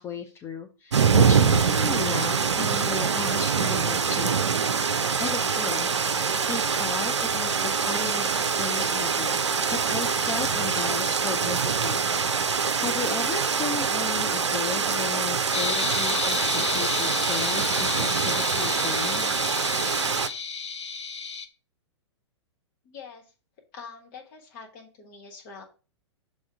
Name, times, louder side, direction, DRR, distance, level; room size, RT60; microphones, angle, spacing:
voice 1, 0.0-4.4 5.2-6.0 6.4-9.4 9.7-19.3, left 6 dB, 15° left, 5 dB, 0.5 m, -35 dB
sound 1, 0.9-20.3, right 6 dB, 70° right, 0.5 m, -24 dB
sound 2, 15.5-21.5, left 5 dB, 70° left, 0.7 m, -31 dB
voice 2, 22.8-23.3 23.7-25.6, left 5 dB, 35° left, 1 dB, 1.4 m, -44 dB
6.2 x 3.6 x 4.6 m, 0.35 s
figure-of-eight pair, 110°, 15 cm